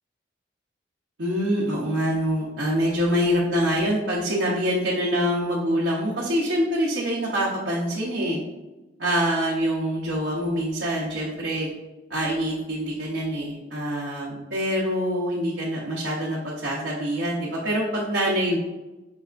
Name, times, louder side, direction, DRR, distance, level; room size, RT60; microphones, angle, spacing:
voice 1, 1.2-8.4 9.0-11.7 12.1-18.6, equal, 65° right, -6 dB, 0.8 m, -25 dB
5.4 x 3.3 x 2.4 m, 1.1 s
head